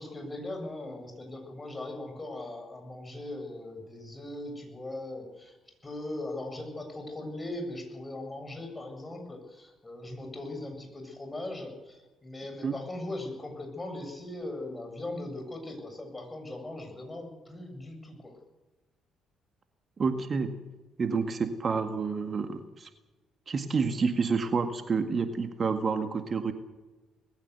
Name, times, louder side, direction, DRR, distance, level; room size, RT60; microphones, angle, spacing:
voice 1, 0.0-5.6 5.8-18.3, left 1 dB, 20° left, 4 dB, 7.7 m, -39 dB
voice 2, 20.0-20.5 21.0-22.9 23.5-26.5, right 5 dB, 45° right, 8 dB, 1.9 m, -29 dB
20.5 x 16.0 x 8.3 m, 1.1 s
hypercardioid pair, 45°, 0 cm